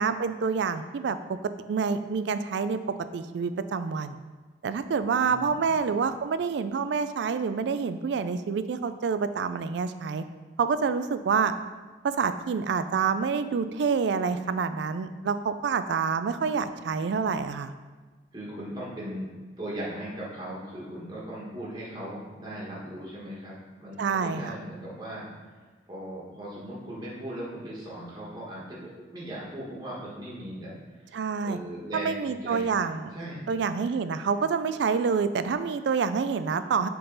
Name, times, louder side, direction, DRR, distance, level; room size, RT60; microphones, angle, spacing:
voice 1, 0.0-1.4 1.7-2.8 3.1-4.2 4.6-10.2 10.6-11.5 12.0-17.7 24.0-24.5 31.1-31.6 31.9-33.1 33.5-36.9, right 5 dB, 70° right, 11 dB, 0.3 m, -27 dB
voice 2, 5.1-6.0 16.8-17.0 18.3-19.3 19.6-31.1 31.4-32.8 33.1-33.4, right 1 dB, 20° right, -7 dB, 1.4 m, -39 dB
6.8 x 3.8 x 3.9 m, 1.3 s
head